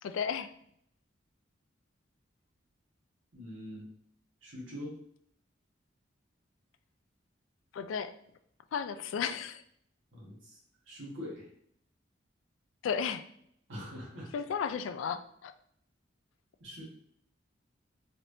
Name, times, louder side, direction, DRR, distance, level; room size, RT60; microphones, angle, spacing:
voice 1, 0.0-0.5 7.7-8.2 8.7-9.6 12.8-13.3 14.3-15.5, left 7 dB, 90° left, 11 dB, 0.3 m, -34 dB
voice 2, 3.3-3.9 4.4-5.0 10.1-10.6 10.9-11.5 13.7-14.3 16.6-16.8, left 1 dB, 85° right, -5 dB, 1.4 m, -43 dB
4.2 x 3.3 x 2.7 m, 0.67 s
head